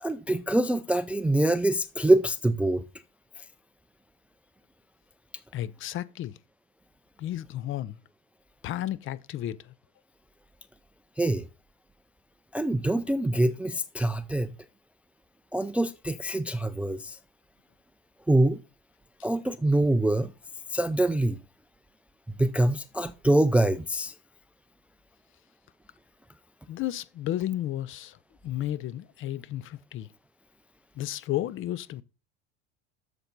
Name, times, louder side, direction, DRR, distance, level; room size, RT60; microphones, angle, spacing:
voice 1, 0.0-2.8 3.4-3.5 11.2-11.4 12.5-14.6 15.5-17.2 18.3-18.6 19.2-20.3 20.7-21.4 22.4-24.1, right 1 dB, 5° right, 0.4 m, -24 dB
voice 2, 5.5-6.3 7.2-8.0 8.6-9.7 26.7-28.2 28.4-30.1 31.0-32.0, left 13 dB, 40° left, 0.6 m, -33 dB
8.6 x 7.0 x 4.0 m
hypercardioid pair, 100°, 33 cm